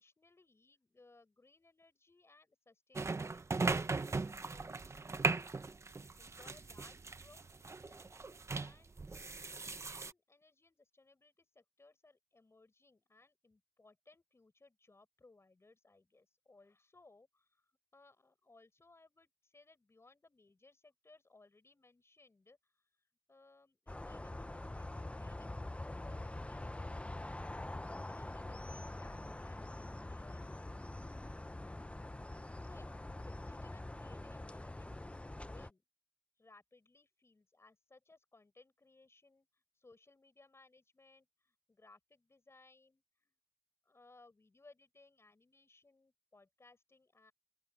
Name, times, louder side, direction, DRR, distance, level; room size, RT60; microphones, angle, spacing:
voice 1, 0.0-5.0 6.2-8.1 8.6-9.0 9.7-22.8 23.3-31.4 32.6-32.9 33.2-34.9 35.3-35.8 36.4-43.3 43.8-47.3, left 3 dB, 50° left, 6.8 m, -64 dB
sound 1, 3.0-10.1, right 3 dB, 55° right, 0.9 m, -38 dB
sound 2, 23.9-35.7, left 1 dB, 20° left, 0.9 m, -45 dB
open air
cardioid pair, 50°, 6 cm